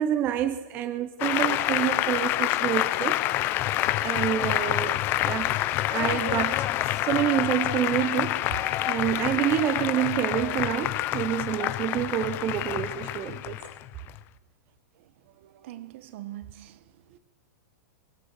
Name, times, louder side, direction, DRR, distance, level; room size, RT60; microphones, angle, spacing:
voice 1, 0.0-3.2 4.0-8.6 8.8-13.6, right 11 dB, 20° right, 0.7 m, -28 dB
Applause, 1.2-14.2, left 15 dB, 25° left, 0.6 m, -27 dB
voice 2, 15.4-16.8 17.1-17.2, right 14 dB, 45° right, 1.2 m, -42 dB
23.5 x 20.5 x 6.5 m
supercardioid pair, 175°, 9 cm